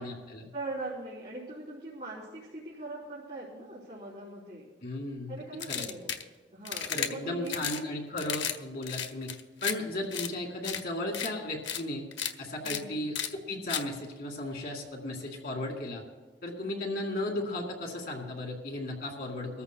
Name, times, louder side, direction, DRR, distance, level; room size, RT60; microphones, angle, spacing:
voice 1, 0.0-0.5 4.8-5.3 5.7-5.9 6.9-9.3 9.6-12.1 12.4-16.0 16.4-19.6, left 1 dB, 55° left, 0 dB, 2.2 m, -35 dB
voice 2, 0.5-4.6 5.3-6.1 6.5-7.9 12.6-13.1 16.6-17.0, right 2 dB, 45° right, -9 dB, 3.5 m, -41 dB
sound 1, 5.6-6.2 6.6-7.1 7.5-7.8 8.2-8.6 8.8-9.7 10.1-10.3 10.6-10.8 11.1-11.3 11.6-11.8 12.1-12.3 12.6-12.8 13.1-13.3 13.7-13.8, left 8 dB, 80° left, 0.8 m, -33 dB
23.0 x 14.0 x 2.2 m, 1.3 s
head